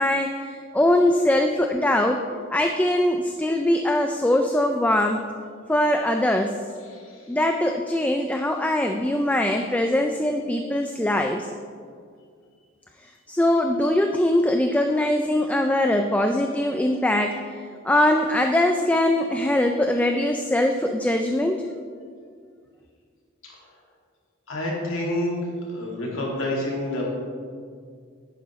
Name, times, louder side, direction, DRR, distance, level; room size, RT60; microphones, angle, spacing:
voice 1, 0.0-2.2 2.5-5.2 5.7-6.6 7.3-11.5 13.0-21.7, left 1 dB, 5° left, 4 dB, 0.3 m, -22 dB
voice 2, 6.9-7.3 23.4-23.6 24.5-25.4 25.7-27.1, left 1 dB, 75° left, -3 dB, 2.2 m, -28 dB
11.0 x 9.1 x 3.1 m, 2.1 s
head